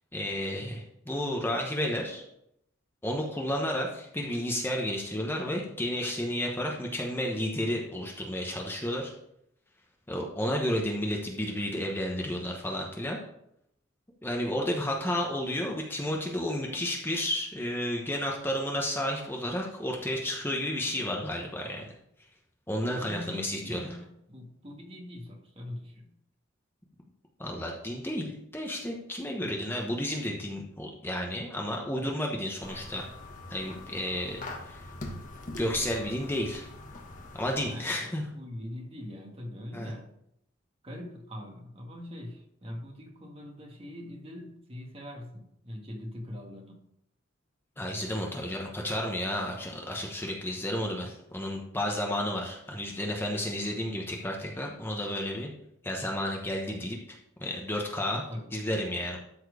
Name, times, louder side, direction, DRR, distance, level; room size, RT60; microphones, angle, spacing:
voice 1, 0.1-2.2 3.0-9.1 10.1-13.2 14.2-21.9 22.7-23.8 27.4-33.0 33.5-34.8 35.6-36.7 37.3-38.2 39.7-39.9 47.8-55.5 55.8-58.2 58.5-59.2, left 1 dB, 10° left, -1 dB, 1.1 m, -32 dB
voice 2, 22.8-26.1 37.6-40.1 40.8-46.8 48.3-48.5 58.1-58.6, left 1 dB, 30° right, 2 dB, 1.6 m, -42 dB
sound 1, 32.6-37.7, left 2 dB, 40° left, 1.3 m, -43 dB
13.0 x 4.5 x 5.0 m, 0.76 s
head